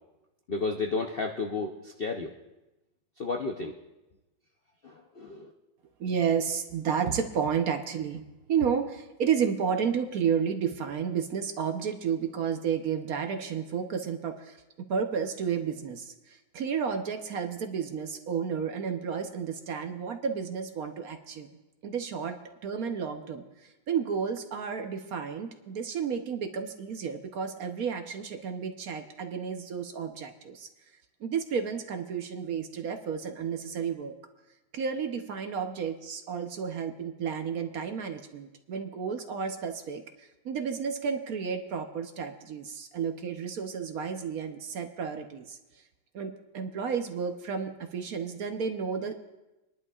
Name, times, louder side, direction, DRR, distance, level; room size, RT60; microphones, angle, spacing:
voice 1, 0.5-2.3 3.2-3.8 4.8-5.5, left 4 dB, 90° left, 3 dB, 0.5 m, -32 dB
voice 2, 6.0-8.2 8.5-21.5 21.8-30.7 31.2-34.1 34.7-45.6 46.1-49.3, right 7 dB, 60° right, 6 dB, 1.1 m, -32 dB
25.5 x 11.0 x 2.4 m, 1.0 s
omnidirectional pair, 2.1 m